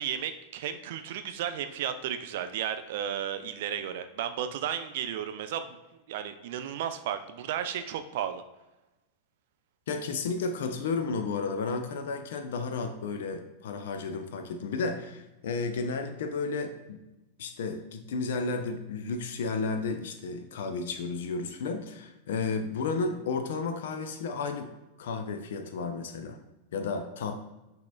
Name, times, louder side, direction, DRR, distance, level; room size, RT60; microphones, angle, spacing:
voice 1, 0.0-5.8 6.1-8.4, right 9 dB, 55° right, 9 dB, 0.3 m, -33 dB
voice 2, 9.9-17.0 17.4-24.7 25.0-26.4 26.7-27.4, left 4 dB, 60° left, 8 dB, 0.4 m, -32 dB
5.8 x 2.8 x 2.2 m, 1.0 s
figure-of-eight pair, 90°, 0 cm